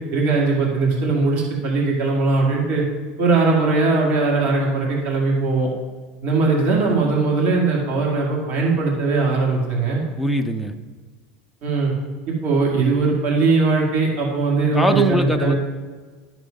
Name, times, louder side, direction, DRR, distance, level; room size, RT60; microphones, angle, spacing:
voice 1, 0.1-2.8 3.2-5.7 6.2-10.0 11.6-11.9 12.3-15.6, right 3 dB, 50° right, -2 dB, 2.4 m, -20 dB
voice 2, 10.2-10.7 14.7-15.6, right 1 dB, ahead, 7 dB, 0.6 m, -21 dB
12.0 x 4.6 x 5.3 m, 1.5 s
supercardioid pair, 135°, 4 cm